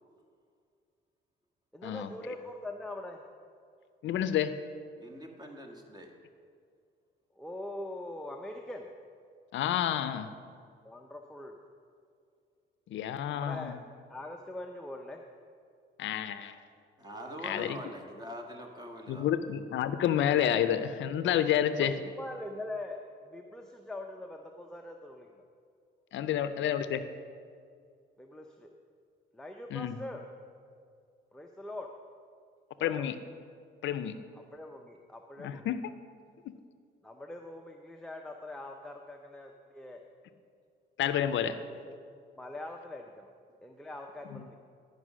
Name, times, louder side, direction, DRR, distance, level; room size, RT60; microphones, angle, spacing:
voice 1, 1.7-3.2 7.4-8.9 10.8-11.6 13.3-13.8 14.1-15.2 21.8-23.0 23.2-25.3 28.2-28.7 29.3-30.2 31.3-31.9 32.8-33.1 34.5-35.7 37.0-40.0 41.7-42.0 42.4-43.3 43.6-44.6, left 1 dB, 5° left, 2 dB, 0.6 m, -42 dB
voice 2, 4.0-4.5 9.5-10.3 12.9-13.8 16.0-16.6 17.4-17.8 19.1-21.9 26.1-27.0 29.7-30.0 32.8-33.2 33.8-34.2 35.4-35.8 36.4-36.5 41.0-41.6 44.3-44.5, left 10 dB, 75° left, 11 dB, 0.5 m, -29 dB
voice 3, 5.0-6.1 17.0-19.3, equal, 20° right, 2 dB, 1.5 m, -43 dB
11.0 x 5.3 x 6.2 m, 2.3 s
cardioid pair, 90°, 20 cm